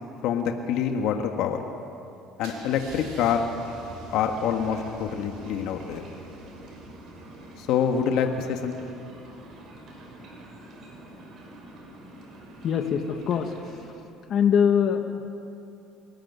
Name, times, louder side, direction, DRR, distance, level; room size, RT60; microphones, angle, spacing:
voice 1, 0.2-1.6 2.4-3.4 4.1-6.0 7.6-8.7, left 7 dB, 70° left, 4 dB, 1.7 m, -26 dB
Car / Engine starting / Idling, 2.4-8.3, right 2 dB, 85° right, 5.3 m, -46 dB
sound 1, 3.6-13.9, right 1 dB, 55° right, 5.9 m, -46 dB
voice 2, 12.6-13.8 14.3-15.3, left 7 dB, 50° left, 5 dB, 1.8 m, -23 dB
27.0 x 14.0 x 9.5 m, 2.7 s
supercardioid pair, 105°, 0 cm